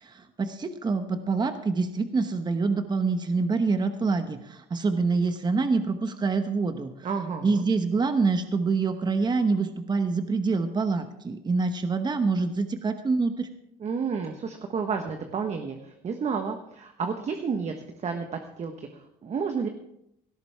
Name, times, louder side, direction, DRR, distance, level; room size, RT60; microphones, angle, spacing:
voice 1, 0.0-6.9 7.4-13.5, right 4 dB, 25° right, 8 dB, 1.0 m, -26 dB
voice 2, 7.0-7.6 13.8-17.7 18.0-19.7, right 5 dB, 40° right, 5 dB, 1.3 m, -31 dB
17.0 x 13.0 x 3.5 m, 0.79 s
cardioid pair, 110°, 17 cm